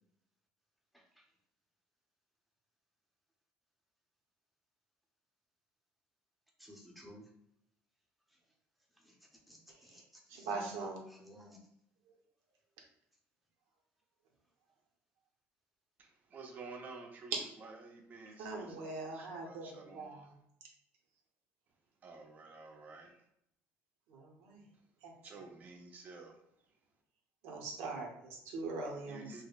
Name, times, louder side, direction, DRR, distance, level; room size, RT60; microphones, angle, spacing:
voice 1, 0.9-1.2 6.6-7.2 9.0-9.2 9.5-11.6, left 1 dB, ahead, -1 dB, 0.7 m, -56 dB
voice 2, 10.3-11.0 18.4-20.3 20.6-20.7 24.1-24.6 25.0-25.1 27.4-29.4, right 3 dB, 85° right, 0 dB, 0.9 m, -42 dB
voice 3, 16.0-17.3 17.6-18.8 19.1-20.3 22.0-23.2 25.2-26.4 29.1-29.4, right 3 dB, 35° right, 1 dB, 0.7 m, -51 dB
5.0 x 2.1 x 2.4 m, 0.74 s
cardioid pair, 120°, 5 cm